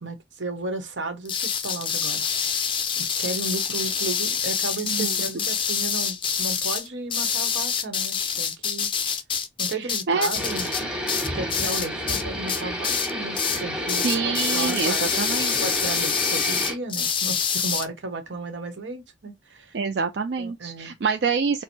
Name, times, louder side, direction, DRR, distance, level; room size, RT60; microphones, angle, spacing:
voice 1, 0.0-2.6 3.0-8.9 9.6-10.7 11.3-19.8 20.4-20.9, right 2 dB, 85° right, 1.0 m, -34 dB
sound 1, 1.2-12.2 12.5-13.1 13.3-13.6 13.9-17.8, left 7 dB, 30° left, 0.5 m, -26 dB
voice 2, 4.8-5.2 9.7-10.3 11.6-11.7 14.0-15.8 19.7-21.6, right 5 dB, 60° right, 0.4 m, -26 dB
sound 2, 10.3-16.8, equal, 5° right, 0.8 m, -30 dB
4.3 x 2.1 x 2.7 m
head